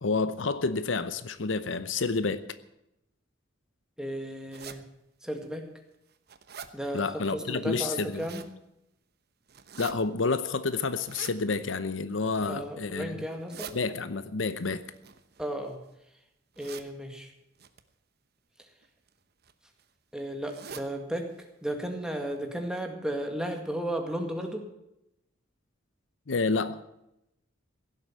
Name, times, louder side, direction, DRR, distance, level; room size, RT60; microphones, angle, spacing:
voice 1, 0.0-2.5 6.9-8.3 9.8-13.2 13.7-14.8 26.3-26.8, left 4 dB, 75° left, 0.8 m, -29 dB
voice 2, 4.0-4.8 5.2-5.7 6.7-8.4 12.4-13.7 15.4-15.8 16.6-17.3 20.1-21.3 21.6-24.7, right 1 dB, 5° right, 2.0 m, -34 dB
sound 1, 4.5-4.8 5.4-5.5 5.9-6.7 7.8-8.5 9.5-9.9 10.9-11.4 12.1-12.5 13.2-13.7 14.9-15.9 16.5-16.9 17.6-17.8 18.8-19.1 19.4-19.5 19.8-19.9 20.4-20.9 21.3-21.4 21.7-21.8 22.4-22.5 22.8-22.9, right 7 dB, 55° right, 1.0 m, -45 dB
16.5 x 7.8 x 9.2 m
head